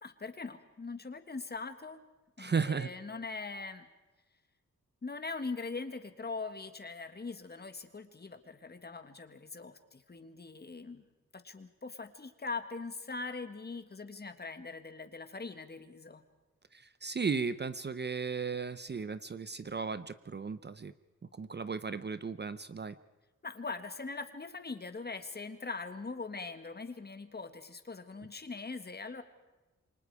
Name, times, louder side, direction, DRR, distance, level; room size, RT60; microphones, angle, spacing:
voice 1, 0.0-2.0 2.4-3.9 5.0-11.1 11.3-16.2 23.4-29.2, left 4 dB, 30° left, 9 dB, 1.7 m, -41 dB
voice 2, 2.4-2.9 16.7-20.9 21.3-22.9, right 5 dB, 35° right, 14 dB, 0.7 m, -35 dB
28.5 x 24.5 x 4.8 m, 1.1 s
wide cardioid pair, 150°, 31 cm